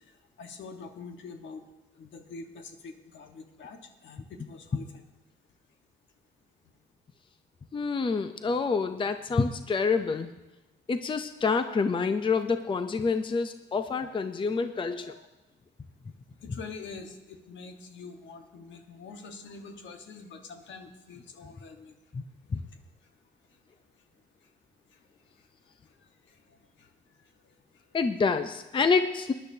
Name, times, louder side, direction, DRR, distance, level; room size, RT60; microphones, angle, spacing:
voice 1, 0.4-1.6 1.9-5.0 14.8-15.3 16.4-21.9 26.3-26.9, left 4 dB, 70° left, 5 dB, 1.3 m, -45 dB
voice 2, 7.7-10.3 10.9-15.2 22.1-22.2 22.5-22.6 27.9-29.3, left 4 dB, 25° left, 9 dB, 0.6 m, -27 dB
19.0 x 10.5 x 2.8 m, 1.1 s
cardioid pair, 90°, 20 cm